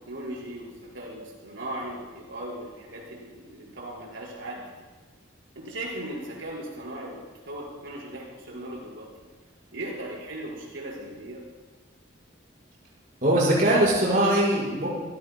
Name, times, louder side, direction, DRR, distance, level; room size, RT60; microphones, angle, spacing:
voice 1, 0.0-4.7 5.6-7.2 7.4-9.1 9.7-11.4, right 1 dB, 90° right, -4 dB, 5.4 m, -38 dB
voice 2, 13.2-14.9, right 1 dB, 45° right, -6 dB, 5.5 m, -21 dB
26.5 x 17.0 x 2.3 m, 1.3 s
head